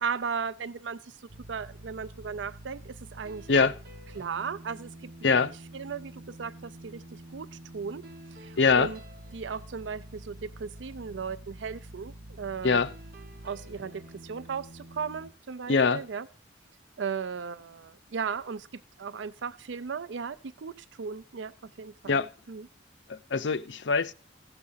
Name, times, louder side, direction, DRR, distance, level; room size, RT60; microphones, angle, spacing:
voice 1, 0.0-3.7 4.1-5.4 5.7-8.1 8.3-9.0 9.3-12.8 13.4-16.3 17.0-22.2 22.5-22.7, right 6 dB, 80° right, 0.5 m, -36 dB
sound 1, 1.3-15.3, right 1 dB, 55° right, 1.1 m, -47 dB
voice 2, 8.6-8.9 12.6-12.9 15.7-16.0 22.1-22.3 23.1-24.1, left 5 dB, 75° left, 0.6 m, -23 dB
15.5 x 6.7 x 5.6 m
head